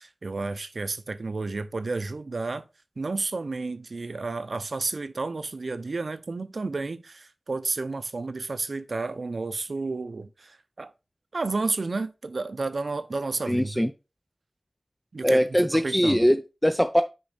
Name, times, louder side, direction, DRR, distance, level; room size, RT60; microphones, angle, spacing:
voice 1, 0.0-2.7 3.0-10.9 11.3-13.9 15.1-15.4 15.7-16.3, right 3 dB, 80° right, 0.6 m, -31 dB
voice 2, 13.5-13.9 15.2-17.0, equal, 10° left, 0.5 m, -22 dB
6.1 x 4.6 x 4.0 m
wide cardioid pair, 55°, 0 cm